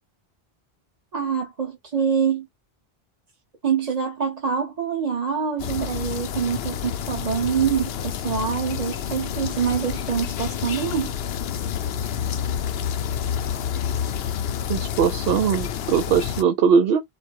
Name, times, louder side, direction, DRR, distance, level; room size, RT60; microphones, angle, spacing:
voice 1, 1.1-2.5 3.6-11.1, right 7 dB, 40° right, 1.0 m, -25 dB
sound 1, 5.6-16.4, left 9 dB, 75° left, 0.8 m, -29 dB
voice 2, 14.7-17.0, right 7 dB, 75° right, 0.8 m, -20 dB
4.2 x 2.1 x 4.6 m
omnidirectional pair, 1.0 m